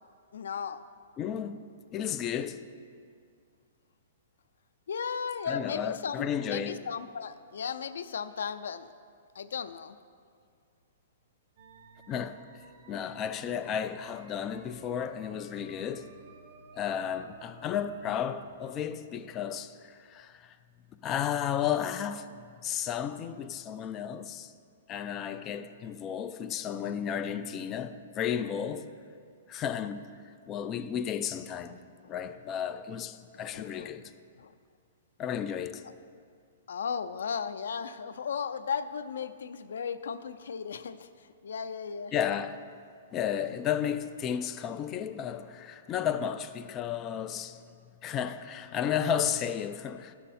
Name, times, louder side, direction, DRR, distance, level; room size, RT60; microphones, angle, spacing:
voice 1, 0.3-0.8 4.9-8.9 9.3-10.0 32.0-32.1 33.3-33.9 34.4-34.5 36.7-42.1, left 6 dB, 85° left, 0.4 m, -36 dB
voice 2, 1.2-1.6 1.9-2.6 5.5-6.8 12.1-12.4 12.9-16.1 16.7-20.6 21.0-22.3 22.6-24.5 24.9-28.9 29.5-30.0 30.5-31.8 32.1-34.1 35.2-35.8 42.1-42.6 43.1-47.6 48.0-50.1, left 8 dB, 20° left, 0.3 m, -33 dB
sound 1, 11.6-18.5, right 4 dB, 40° right, 0.8 m, -54 dB
10.5 x 6.5 x 4.2 m
hypercardioid pair, 165°, 0 cm